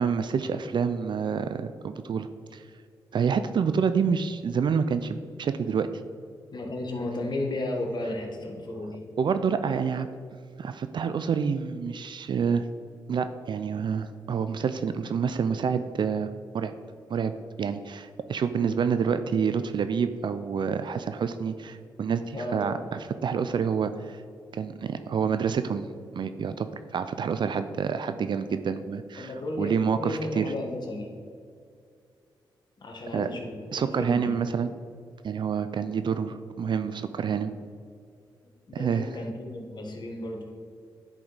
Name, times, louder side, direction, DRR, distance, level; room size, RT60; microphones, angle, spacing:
voice 1, 0.0-2.6 3.1-5.9 9.2-10.1 10.6-12.7 13.1-16.3 16.5-16.7 17.1-24.2 24.5-29.3 29.6-30.4 33.1-33.3 33.7-34.7 35.2-37.5 38.7-39.1, right 6 dB, 55° right, 10 dB, 0.4 m, -28 dB
voice 2, 6.5-9.0 22.3-22.9 29.2-31.1 32.8-34.4 38.7-40.5, left 1 dB, 50° left, 2 dB, 1.5 m, -34 dB
10.5 x 5.0 x 4.0 m, 2.3 s
cardioid pair, 55°, 9 cm